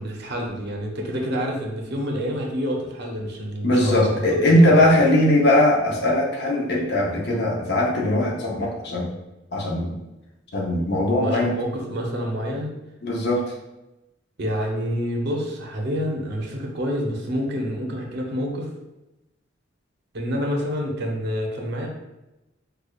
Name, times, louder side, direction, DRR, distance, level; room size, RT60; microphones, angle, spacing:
voice 1, 0.0-4.2 4.6-4.9 7.3-7.5 11.1-12.7 14.4-18.7 20.1-21.9, equal, 60° right, 0 dB, 0.7 m, -28 dB
voice 2, 3.6-9.1 9.5-10.0 10.5-11.5 13.0-13.5, left 1 dB, 60° left, -2 dB, 0.7 m, -20 dB
4.8 x 2.3 x 2.3 m, 0.98 s
head